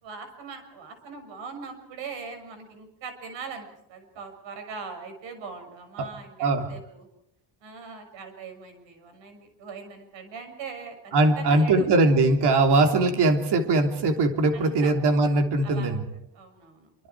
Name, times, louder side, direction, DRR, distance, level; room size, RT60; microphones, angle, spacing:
voice 1, 0.0-7.1 7.6-10.9 11.4-11.9 14.5-15.1 15.6-16.0 16.3-16.9, right 5 dB, 85° right, 6 dB, 6.6 m, -41 dB
voice 2, 11.1-16.0, right 2 dB, 65° right, 5 dB, 3.3 m, -21 dB
27.5 x 25.5 x 4.8 m, 0.82 s
cardioid pair, 145°, 43 cm